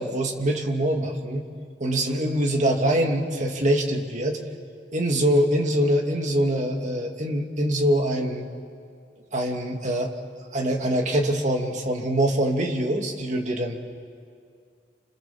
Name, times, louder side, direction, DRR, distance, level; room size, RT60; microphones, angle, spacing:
voice 1, 0.0-1.4 1.8-4.4 4.9-8.5 9.3-10.1 10.5-13.8, right 1 dB, 45° right, 2 dB, 2.5 m, -24 dB
30.0 x 26.5 x 7.3 m, 2.2 s
head